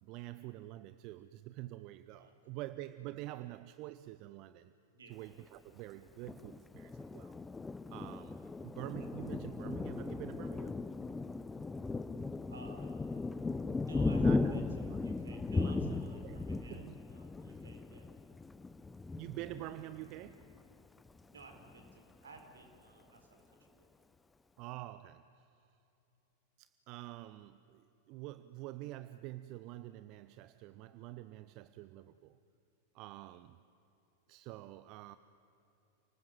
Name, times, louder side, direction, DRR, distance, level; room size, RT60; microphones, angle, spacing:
voice 1, 0.0-4.7 5.1-7.4 7.9-10.8 14.1-15.0 15.6-17.0 17.5-17.6 19.2-20.4 24.6-25.5 26.6-32.4 32.9-33.6 34.3-35.2, right 16 dB, 40° right, 13 dB, 0.6 m, -47 dB
voice 2, 2.2-2.6 4.9-5.2 8.4-8.6 12.5-13.0 13.8-18.1 21.3-23.9, right 3 dB, 70° right, 4 dB, 4.1 m, -56 dB
Thunder, 6.2-20.6 21.1-21.2 21.5-22.1, left 3 dB, 10° left, 0.6 m, -37 dB
29.5 x 19.5 x 7.7 m, 3.0 s
figure-of-eight pair, 90°, 0 cm